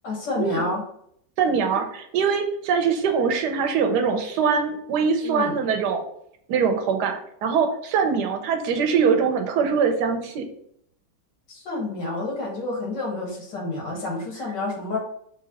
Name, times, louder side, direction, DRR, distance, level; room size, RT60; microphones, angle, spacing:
voice 1, 0.0-0.8 5.2-5.6 11.5-15.0, left 2 dB, 90° left, -2 dB, 2.0 m, -29 dB
voice 2, 1.4-6.0 6.5-10.4, right 6 dB, 75° right, 4 dB, 1.3 m, -23 dB
4.0 x 3.1 x 4.1 m, 0.70 s
omnidirectional pair, 1.8 m